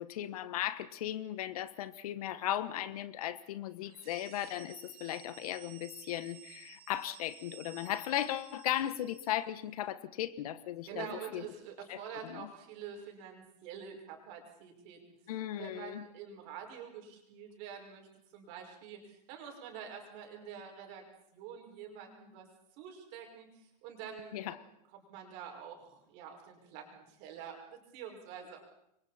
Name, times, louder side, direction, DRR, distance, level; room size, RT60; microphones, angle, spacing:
voice 1, 0.0-11.1 11.3-11.5 11.9-12.5 15.3-16.1 24.3-24.6, left 12 dB, 65° left, 14 dB, 1.3 m, -37 dB
sound 1, 3.8-9.5, right 12 dB, 65° right, 2.6 m, -55 dB
voice 2, 10.9-15.0 15.5-18.1 18.3-21.1 21.3-22.5 22.8-24.6 24.9-28.6, right 7 dB, 40° right, 2 dB, 5.7 m, -47 dB
28.0 x 24.0 x 4.3 m, 0.76 s
supercardioid pair, 165°, 20 cm